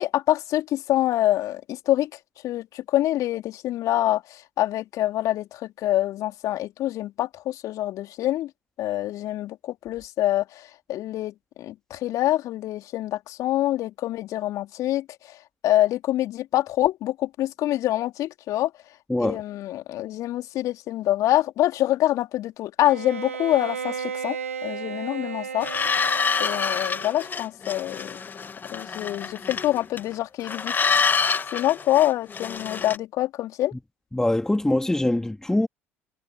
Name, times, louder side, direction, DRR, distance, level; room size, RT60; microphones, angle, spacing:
voice 1, 0.0-2.1 2.4-8.5 8.8-15.4 15.6-18.7 19.2-25.7 26.4-28.2 28.7-30.7 31.5-33.7, left 14 dB, 50° left, 3.8 m, -25 dB
Bowed string instrument, 22.8-27.3, right 7 dB, 85° right, 1.9 m, -34 dB
sound 1, 25.6-30.1 30.4-33.0, left 5 dB, 25° left, 2.0 m, -27 dB
voice 2, 34.1-35.7, left 1 dB, 5° left, 2.9 m, -23 dB
figure-of-eight pair, 65°, 7 cm